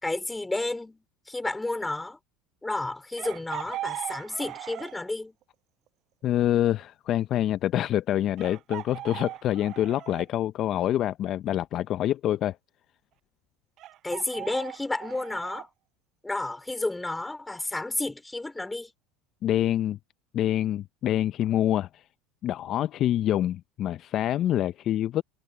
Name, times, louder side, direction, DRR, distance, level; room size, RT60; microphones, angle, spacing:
voice 1, 0.0-2.2 2.6-5.4 14.0-15.7 16.2-18.9, left 2 dB, 10° left, 3.9 m, -31 dB
Chicken rooster, 3.2-5.1 6.8-6.9 8.4-10.3 13.8-15.7, right 14 dB, 50° right, 7.4 m, -39 dB
voice 2, 6.2-12.6 19.4-20.0 20.3-21.9 22.4-25.2, left 12 dB, 45° left, 0.5 m, -26 dB
supercardioid pair, 115°, 0 cm